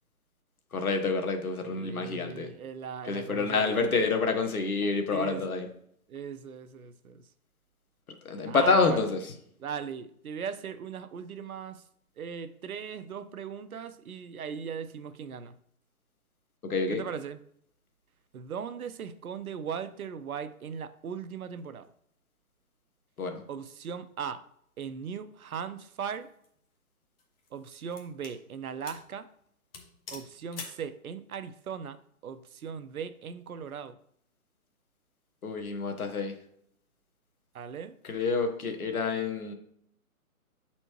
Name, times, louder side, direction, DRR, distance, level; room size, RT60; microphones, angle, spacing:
voice 1, 0.7-2.5 3.0-5.7 8.2-9.2 16.6-17.0 23.2-23.4 35.4-36.3 38.0-39.5, left 4 dB, 75° left, 1.4 m, -28 dB
voice 2, 1.6-3.8 5.1-5.5 6.1-7.2 8.4-9.0 9.6-11.8 12.2-15.5 16.9-17.4 18.3-21.9 23.5-24.4 24.8-26.3 27.5-29.3 30.1-34.0 37.5-38.0, right 7 dB, 75° right, 0.7 m, -38 dB
sound 1, 26.2-26.5 27.2-28.4 28.9-29.1 29.4-29.5 29.7-30.9, left 4 dB, 40° left, 1.3 m, -45 dB
7.7 x 4.2 x 3.1 m
hypercardioid pair, 145°, 43 cm